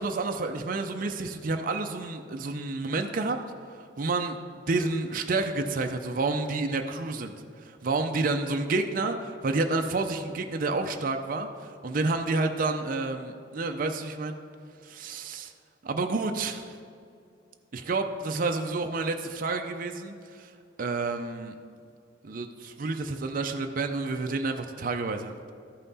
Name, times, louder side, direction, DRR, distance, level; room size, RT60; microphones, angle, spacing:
voice 1, 0.0-3.4 3.7-7.3 7.6-14.4 14.8-15.5 15.8-16.7 17.7-20.5 20.8-21.5 22.2-25.3, right 3 dB, 50° right, 5 dB, 0.5 m, -29 dB
13.0 x 5.6 x 4.1 m, 2.4 s
head